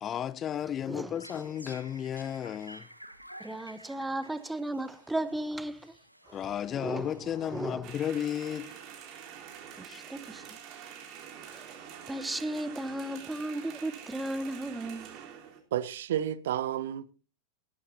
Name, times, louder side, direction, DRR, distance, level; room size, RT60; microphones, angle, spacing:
voice 1, 0.0-2.9 6.3-8.7 9.9-10.0, left 9 dB, 25° left, 0.7 m, -33 dB
sound 1, 0.9-8.2, equal, 90° right, 1.3 m, -52 dB
voice 2, 3.4-5.9 6.3-6.4 6.7-7.1 7.4-7.9 9.8-10.6 11.5-11.8 12.1-15.1, right 1 dB, 5° right, 0.8 m, -35 dB
sound 2, 7.8-15.6, right 8 dB, 40° right, 3.5 m, -46 dB
voice 3, 15.7-17.1, right 11 dB, 60° right, 0.7 m, -31 dB
19.0 x 11.5 x 2.7 m
figure-of-eight pair, 90°, 0 cm